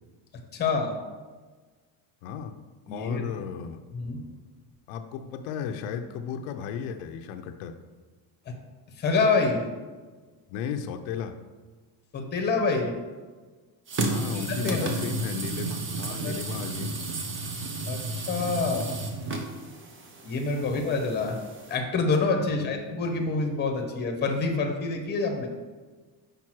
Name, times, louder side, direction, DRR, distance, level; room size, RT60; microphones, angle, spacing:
voice 1, 0.5-0.9 2.9-3.2 3.9-4.2 9.0-9.6 12.1-12.9 14.6-14.9 16.2-16.4 17.9-18.9 20.2-21.4 21.7-25.5, left 4 dB, 20° left, 3 dB, 1.0 m, -26 dB
voice 2, 2.2-2.5 2.9-3.8 4.9-7.7 10.5-11.4 14.0-17.0 20.6-20.9 22.5-22.8, left 7 dB, 80° left, 6 dB, 0.7 m, -34 dB
sound 1, 13.9-21.8, right 3 dB, 25° right, 0.6 m, -33 dB
6.0 x 5.3 x 4.5 m, 1.4 s
cardioid pair, 160°, 48 cm